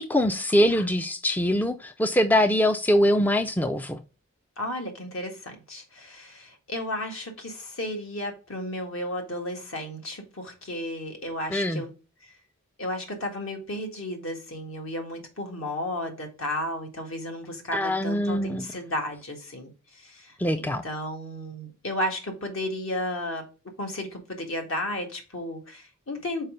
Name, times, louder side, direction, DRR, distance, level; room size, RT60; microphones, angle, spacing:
voice 1, 0.0-4.0 11.5-11.8 17.7-18.7 20.4-20.8, equal, 10° left, 0.3 m, -23 dB
voice 2, 4.6-11.9 12.8-23.5 23.8-26.5, left 1 dB, 65° left, 2.0 m, -33 dB
5.5 x 4.7 x 5.1 m
head